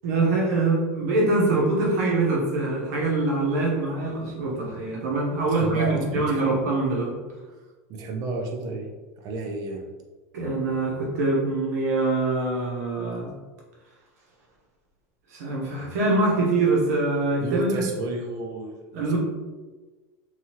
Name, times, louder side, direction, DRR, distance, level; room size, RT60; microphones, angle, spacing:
voice 1, 0.0-7.2 10.3-13.3 15.3-17.8 18.9-19.2, right 2 dB, 85° right, -2 dB, 0.9 m, -24 dB
voice 2, 5.5-6.6 7.9-8.9 9.2-9.9 17.4-19.2, right 2 dB, 50° right, 2 dB, 0.6 m, -31 dB
2.8 x 2.4 x 2.8 m, 1.3 s
supercardioid pair, 115°, 8 cm